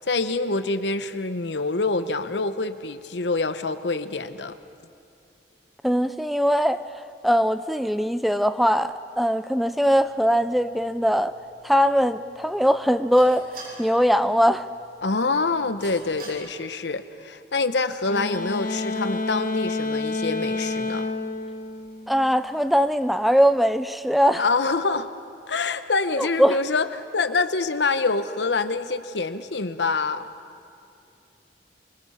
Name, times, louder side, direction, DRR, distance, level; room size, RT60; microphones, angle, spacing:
voice 1, 0.0-4.6 15.0-21.1 24.3-25.1 25.5-30.2, left 3 dB, 75° left, 11 dB, 1.0 m, -26 dB
voice 2, 5.8-6.8 7.2-11.3 11.6-13.5 13.8-14.7 22.1-24.4 26.2-26.6, equal, ahead, 12 dB, 0.4 m, -21 dB
sound 1, 9.9-16.3, right 2 dB, 55° right, 8.0 m, -48 dB
sound 2, 18.1-22.5, left 2 dB, 50° left, 2.2 m, -29 dB
25.5 x 23.5 x 5.7 m, 2.6 s
head